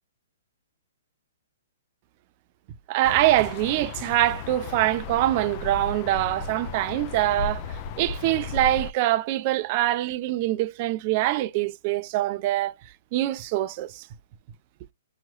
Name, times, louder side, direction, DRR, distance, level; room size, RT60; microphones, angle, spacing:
voice 1, 2.9-7.6 8.0-12.7 13.1-14.1, right 15 dB, 40° right, 0.5 m, -24 dB
sound 1, 3.0-8.9, left 5 dB, 35° left, 0.5 m, -35 dB
4.8 x 3.1 x 2.3 m
hypercardioid pair, 130°, 0 cm